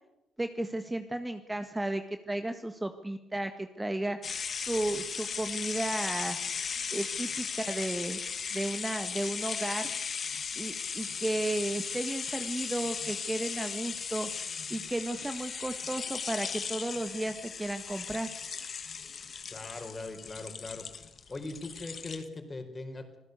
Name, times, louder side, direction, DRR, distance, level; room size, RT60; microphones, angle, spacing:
voice 1, 0.4-4.2 4.5-6.4 6.9-8.2 8.5-9.9 10.6-14.3 14.7-18.3, right 1 dB, 10° right, 8 dB, 1.6 m, -34 dB
sound 1, 4.2-22.2, left 6 dB, 45° left, 2.1 m, -37 dB
voice 2, 19.5-20.9 21.3-23.2, left 2 dB, 25° left, 6 dB, 4.8 m, -40 dB
26.5 x 16.0 x 8.2 m, 0.89 s
cardioid pair, 90°, 0 cm